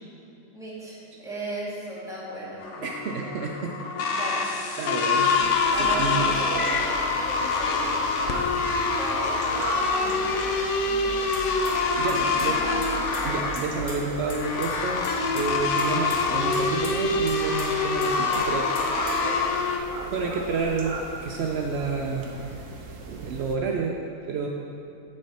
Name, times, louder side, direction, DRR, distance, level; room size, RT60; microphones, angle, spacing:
voice 1, 0.5-2.9 4.1-4.5 5.7-8.4 9.0-10.4 10.9-11.4 12.3-12.8, right 1 dB, ahead, -8 dB, 1.7 m, -37 dB
sound 1, 2.6-19.8, left 4 dB, 60° left, 0.8 m, -25 dB
voice 2, 2.8-3.7 4.8-6.3 11.7-12.6 13.2-18.7 20.1-22.5 22.9-24.0 24.3-24.5, right 4 dB, 80° right, 0 dB, 0.5 m, -30 dB
sound 2, 5.1-23.6, right 3 dB, 60° right, 1.0 m, -38 dB
sound 3, 11.3-11.7 12.1-12.5 12.8-14.0 14.3-14.4 14.6-14.7 15.0-15.4 15.8-16.2 16.5-16.9 17.3-17.6 18.0-19.4, left 2 dB, 80° left, 1.9 m, -39 dB
7.8 x 6.4 x 4.2 m, 2.9 s
omnidirectional pair, 1.7 m